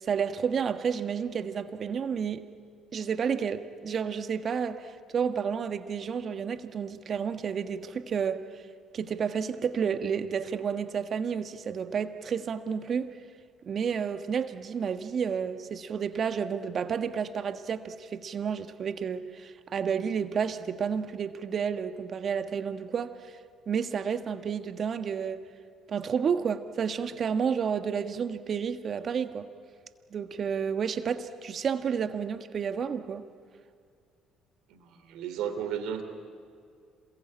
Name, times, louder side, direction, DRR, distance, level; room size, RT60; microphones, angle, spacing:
voice 1, 0.0-2.4 2.9-8.4 8.9-13.1 13.7-23.3 23.7-25.4 25.9-29.5 30.1-33.2, right 7 dB, 50° right, 1.5 m, -31 dB
voice 2, 34.7-36.0, right 8 dB, 70° right, 3.2 m, -34 dB
27.0 x 21.5 x 8.9 m
hypercardioid pair, 60°, 0 cm